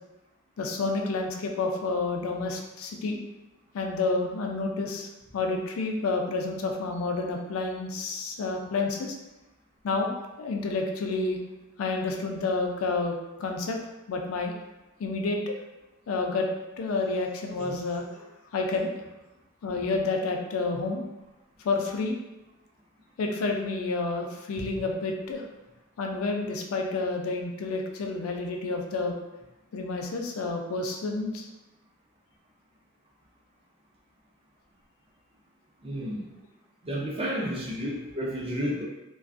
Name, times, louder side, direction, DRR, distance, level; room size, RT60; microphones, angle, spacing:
voice 1, 0.6-3.2 3.7-9.2 9.8-11.4 11.8-13.8 14.1-14.5 15.0-15.5 16.1-16.5 16.8-18.2 18.5-18.9 19.6-21.0 21.6-22.2 23.2-25.5 26.0-29.1 29.7-31.5, left 3 dB, 85° left, 2 dB, 0.4 m, -29 dB
voice 2, 35.8-36.2 36.8-38.8, equal, 25° right, -3 dB, 0.4 m, -31 dB
2.4 x 2.3 x 2.4 m, 1.0 s
head